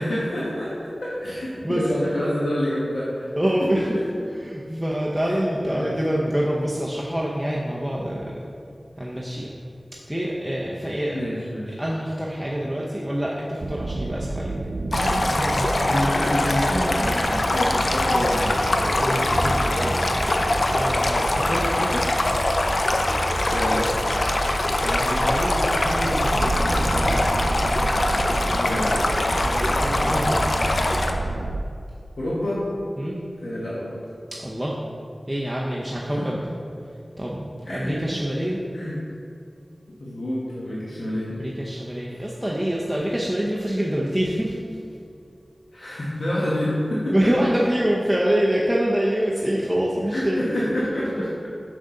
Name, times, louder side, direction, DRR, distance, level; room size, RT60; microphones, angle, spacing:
voice 1, 0.0-3.3 3.8-3.9 5.3-5.4 5.7-6.0 11.1-11.8 15.9-19.0 23.5-23.9 28.5-29.0 32.2-32.6 33.4-33.9 36.2-36.3 37.7-38.0 38.7-39.0 40.0-41.3 42.1-42.2 45.7-47.1 50.1-51.3, left 1 dB, 85° left, -8 dB, 1.3 m, -27 dB
voice 2, 3.4-4.0 4.4-8.4 9.0-9.5 10.1-11.2 11.8-14.5 14.9-15.9 19.0-20.0 20.7-22.0 24.8-27.1 29.4-30.4 33.0-33.2 34.3-34.8 35.3-36.4 37.2-38.6 41.3-44.6 47.1-50.5, equal, 5° right, -5 dB, 0.7 m, -26 dB
sound 1, 13.6-31.6, right 2 dB, 80° right, 0.4 m, -29 dB
Stream, 14.9-31.1, left 2 dB, 65° left, 0.5 m, -23 dB
6.5 x 6.0 x 3.9 m, 2.4 s
wide cardioid pair, 75°, 0 cm